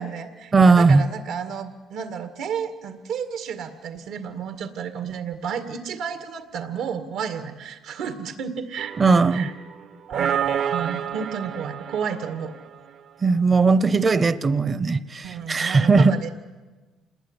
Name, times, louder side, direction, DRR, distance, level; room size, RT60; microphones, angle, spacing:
voice 1, 0.0-9.0 9.3-9.5 10.1-12.5 15.2-16.3, right 7 dB, 80° right, 2.0 m, -32 dB
voice 2, 0.5-1.0 9.0-9.5 13.2-16.1, right 4 dB, 30° right, 0.8 m, -18 dB
sound 1, 8.8-9.7 10.1-12.9, right 8 dB, 60° right, 1.0 m, -29 dB
27.5 x 20.0 x 9.9 m
cardioid pair, 135°, 0 cm